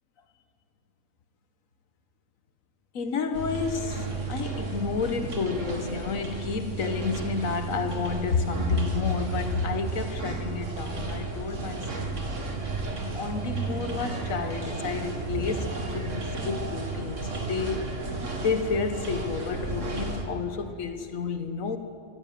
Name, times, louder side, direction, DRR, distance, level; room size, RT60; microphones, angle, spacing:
voice 1, 2.9-12.2 13.0-17.9 18.4-21.8, left 5 dB, 85° left, 1.5 m, -30 dB
sound 1, 3.3-20.2, right 3 dB, 70° right, 2.4 m, -33 dB
23.5 x 15.0 x 7.7 m
omnidirectional pair, 1.4 m